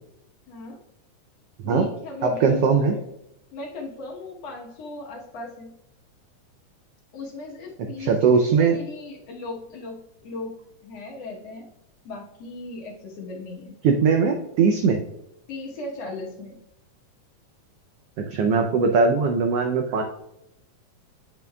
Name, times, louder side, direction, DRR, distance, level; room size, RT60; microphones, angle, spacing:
voice 1, 0.5-0.8 1.6-3.1 3.5-5.7 7.1-10.6 10.8-11.7 12.1-13.8 15.5-16.6, left 2 dB, 60° left, -1 dB, 2.1 m, -37 dB
voice 2, 2.2-2.9 8.0-8.8 13.8-15.0 18.2-20.0, right 5 dB, 85° right, 4 dB, 1.3 m, -20 dB
8.9 x 6.0 x 2.3 m, 0.81 s
omnidirectional pair, 3.4 m